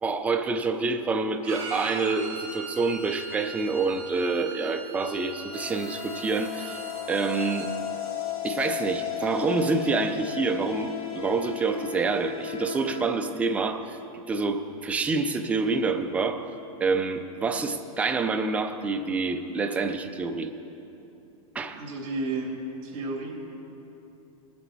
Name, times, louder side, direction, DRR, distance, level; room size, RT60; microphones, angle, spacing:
voice 1, 0.0-6.8 7.1-7.7 8.4-14.0 14.3-16.5 16.8-20.5 21.5-21.8, right 4 dB, 5° right, 6 dB, 0.4 m, -27 dB
Bowed string instrument, 1.4-7.7, right 2 dB, 25° right, 3.3 m, -40 dB
sound 1, 5.5-13.1, left 10 dB, 50° left, 2.5 m, -35 dB
voice 2, 21.7-22.6 22.8-23.3, right 3 dB, 60° right, -1 dB, 3.1 m, -32 dB
19.0 x 8.2 x 4.5 m, 2.9 s
supercardioid pair, 155°, 18 cm